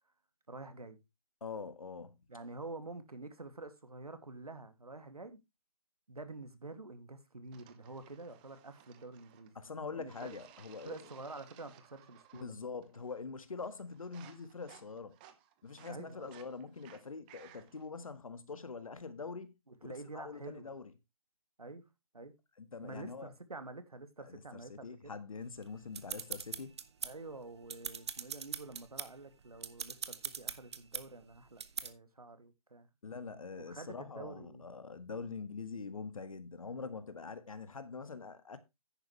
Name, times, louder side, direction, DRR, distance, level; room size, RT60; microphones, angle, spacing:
voice 1, 0.5-1.0 2.3-5.4 6.1-9.6 9.9-10.4 10.8-12.5 15.8-16.3 19.7-20.7 21.6-21.9 22.1-22.3 22.8-25.1 27.0-32.9 33.6-34.7, right 2 dB, 85° right, 2.3 m, -48 dB
voice 2, 1.4-2.2 9.5-11.0 12.3-15.1 15.6-19.6 19.8-20.9 22.6-23.3 24.2-26.7 33.0-38.6, left 4 dB, 65° left, 1.6 m, -44 dB
sound 1, 7.5-9.6 10.1-12.5 12.8-13.3 13.6-17.9, right 11 dB, 15° right, 0.8 m, -60 dB
sound 2, 25.6-27.3 27.6-29.1 29.5-31.0 31.6-31.9, right 6 dB, 50° right, 1.1 m, -41 dB
10.5 x 9.3 x 3.2 m
figure-of-eight pair, 155°, 19 cm